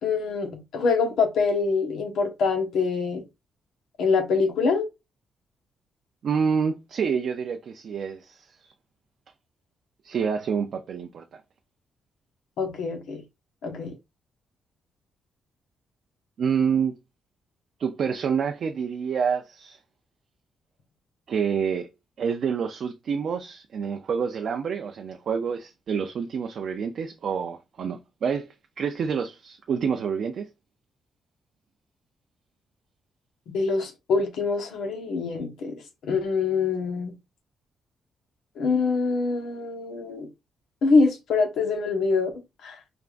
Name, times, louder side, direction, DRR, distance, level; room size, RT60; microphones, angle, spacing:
voice 1, 0.0-3.2 4.0-4.8 12.6-13.2 13.6-14.0 33.5-37.1 38.6-40.3 40.8-42.3 42.6-42.8, left 4 dB, 80° left, 1.2 m, -25 dB
voice 2, 6.2-8.5 10.0-11.2 16.4-16.9 17.8-19.8 21.3-21.9 22.2-30.5, right 6 dB, 45° right, 0.4 m, -27 dB
4.9 x 3.4 x 2.5 m
cardioid pair, 180°, 0 cm